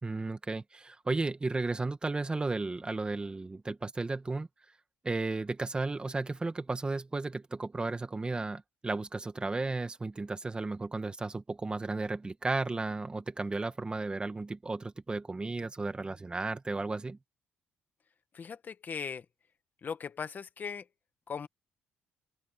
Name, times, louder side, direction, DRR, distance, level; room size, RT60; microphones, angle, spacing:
voice 1, 0.0-4.5 5.0-17.2, right 3 dB, 20° right, 1.8 m, -34 dB
voice 2, 18.3-19.2 19.8-20.9 21.3-21.5, left 6 dB, 40° left, 1.6 m, -38 dB
open air
cardioid pair, 95°, 5 cm